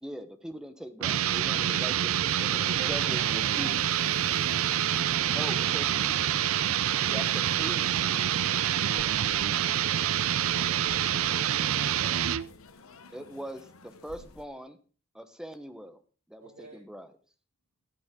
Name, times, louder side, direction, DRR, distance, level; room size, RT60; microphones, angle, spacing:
voice 1, 0.0-2.4 2.6-3.7 5.3-5.9 7.1-7.2 7.6-7.8 13.1-14.8 15.1-16.0 16.3-17.1, equal, 5° right, 9 dB, 1.0 m, -41 dB
sound 1, 1.0-12.5, right 10 dB, 75° right, 0.5 m, -27 dB
sound 2, 1.8-11.9, left 3 dB, 20° left, 5.0 m, -60 dB
voice 2, 2.3-3.8 10.4-10.7, right 3 dB, 35° right, 1 dB, 2.8 m, -50 dB
sound 3, 2.7-14.5, left 4 dB, 75° left, 0.9 m, -51 dB
voice 3, 6.9-9.5 10.7-12.2 16.4-16.8, right 3 dB, 90° right, 0 dB, 2.1 m, -49 dB
14.5 x 9.5 x 3.7 m, 0.38 s
head